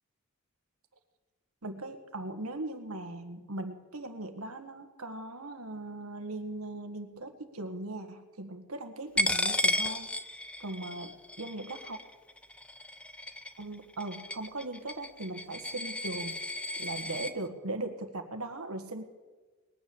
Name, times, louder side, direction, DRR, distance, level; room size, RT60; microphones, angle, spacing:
voice 1, 1.6-10.1 10.6-12.0 13.6-16.4 16.8-19.0, right 2 dB, 85° right, 7 dB, 1.7 m, -39 dB
Coin (dropping), 9.2-17.3, left 1 dB, 5° left, 0.5 m, -34 dB
20.5 x 9.8 x 7.2 m, 1.3 s
head